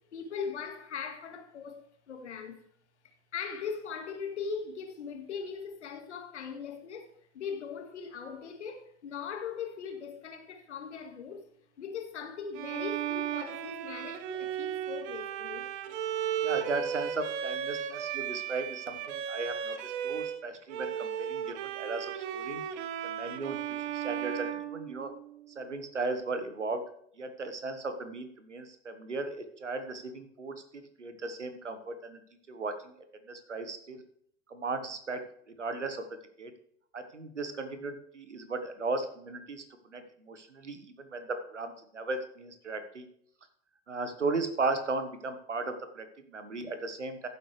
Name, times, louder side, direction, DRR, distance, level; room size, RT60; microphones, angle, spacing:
voice 1, 0.1-2.6 3.3-11.5 11.8-15.7, left 6 dB, 75° left, 1.9 m, -40 dB
Bowed string instrument, 12.5-20.4 20.7-25.5, right 9 dB, 50° right, 1.0 m, -35 dB
voice 2, 16.4-22.6 23.0-23.6 23.9-25.1 25.5-26.8 27.2-32.2 32.5-32.9 33.3-34.0 34.5-35.3 35.6-36.5 36.9-43.1 43.9-47.3, right 3 dB, 85° right, 1.3 m, -36 dB
14.5 x 7.9 x 3.3 m
figure-of-eight pair, 85°, 35 cm